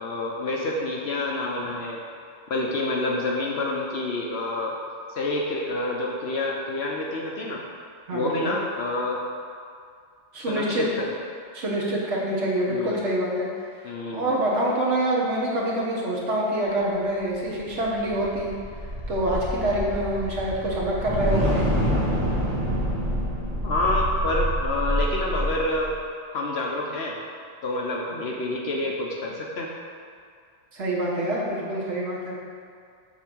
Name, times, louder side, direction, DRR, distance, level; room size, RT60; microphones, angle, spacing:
voice 1, 0.0-2.0 2.5-4.7 5.1-7.6 8.1-9.2 10.4-11.1 12.7-13.0 13.8-14.3 23.6-25.9 26.3-27.2 27.6-29.7, left 2 dB, 65° left, -2 dB, 1.0 m, -28 dB
voice 2, 8.1-8.6 10.3-10.9 11.5-13.5 14.1-18.5 19.1-21.6 30.7-32.4, right 1 dB, 75° right, -5 dB, 1.7 m, -26 dB
sound 1, 17.5-25.9, equal, 35° right, 1.4 m, -27 dB
8.0 x 3.5 x 6.1 m, 2.3 s
omnidirectional pair, 1.2 m